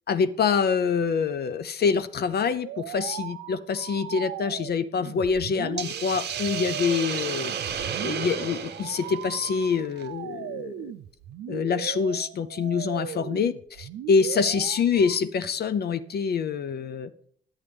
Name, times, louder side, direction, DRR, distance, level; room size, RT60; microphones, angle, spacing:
voice 1, 0.1-7.5 8.0-10.9 11.5-17.1, left 6 dB, 50° left, 14 dB, 0.5 m, -26 dB
sound 1, 2.6-15.2, right 12 dB, 75° right, 0.5 m, -38 dB
Hiss, 5.8-10.0, right 7 dB, 55° right, 0.8 m, -33 dB
9.5 x 8.7 x 3.5 m, 0.64 s
cardioid pair, 90°, 21 cm